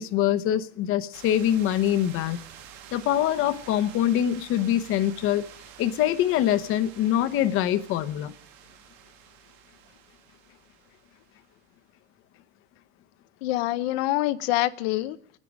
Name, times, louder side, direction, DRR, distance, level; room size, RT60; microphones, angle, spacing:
voice 1, 0.0-2.4 2.9-5.5 5.8-8.3, left 11 dB, 45° left, 0.9 m, -24 dB
sound 1, 1.1-11.6, right 9 dB, 75° right, 1.6 m, -49 dB
voice 2, 13.4-15.4, left 16 dB, 85° left, 0.8 m, -26 dB
28.5 x 9.8 x 5.2 m
cardioid pair, 160°, 31 cm